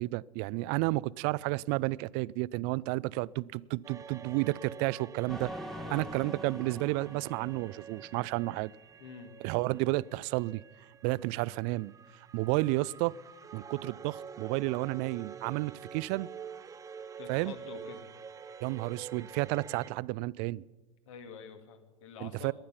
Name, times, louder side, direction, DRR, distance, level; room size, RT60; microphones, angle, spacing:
voice 1, 0.0-5.5 5.9-8.7 9.4-10.6 11.0-11.9 12.3-13.1 13.5-16.3 17.3-17.5 18.6-20.6 22.2-22.5, right 21 dB, 45° right, 0.4 m, -31 dB
sound 1, 3.8-19.9, right 7 dB, 20° right, 0.7 m, -48 dB
sound 2, 5.3-8.7, equal, ahead, 1.1 m, -44 dB
voice 2, 5.8-6.2 9.0-9.3 17.2-18.1 21.1-22.5, left 6 dB, 60° left, 2.2 m, -47 dB
19.0 x 11.5 x 5.7 m
hypercardioid pair, 90°, 18 cm